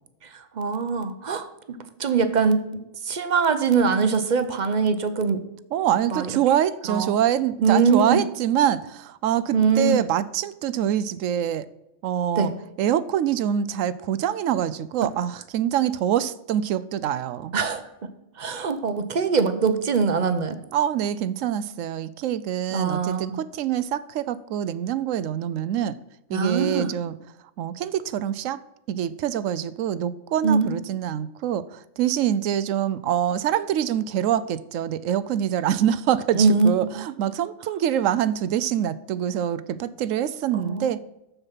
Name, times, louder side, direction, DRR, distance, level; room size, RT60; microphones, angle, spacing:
voice 1, 0.2-5.4 6.1-6.3 6.9-7.1 7.6-8.2 9.5-10.0 12.4-12.5 17.5-17.8 18.4-20.6 22.7-23.4 26.3-26.9 30.4-30.7 36.3-37.0 40.5-40.9, right 5 dB, 40° right, 10 dB, 0.8 m, -23 dB
voice 2, 5.7-11.6 12.0-12.5 12.8-17.6 20.7-25.9 26.3-27.1 27.6-28.6 28.9-41.0, right 10 dB, 75° right, 16 dB, 0.9 m, -25 dB
7.0 x 7.0 x 5.6 m, 0.92 s
omnidirectional pair, 1.4 m